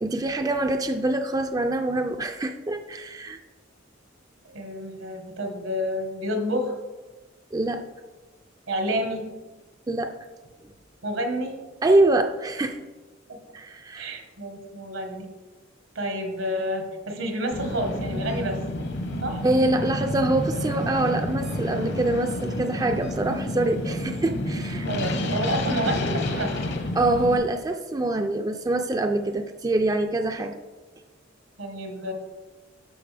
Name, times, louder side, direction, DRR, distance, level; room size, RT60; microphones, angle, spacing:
voice 1, 0.0-3.4 7.5-7.8 9.9-10.1 11.8-12.8 13.5-14.1 19.4-24.9 26.9-30.6, right 2 dB, 20° right, 6 dB, 0.3 m, -25 dB
voice 2, 4.4-6.7 8.7-9.3 11.0-11.6 14.0-15.3 15.9-18.6 19.2-19.4 24.9-26.5 31.6-32.1, equal, 80° right, 4 dB, 1.4 m, -29 dB
sound 1, 17.5-27.3, left 1 dB, 60° left, 1.0 m, -29 dB
12.5 x 5.2 x 3.4 m, 1.2 s
head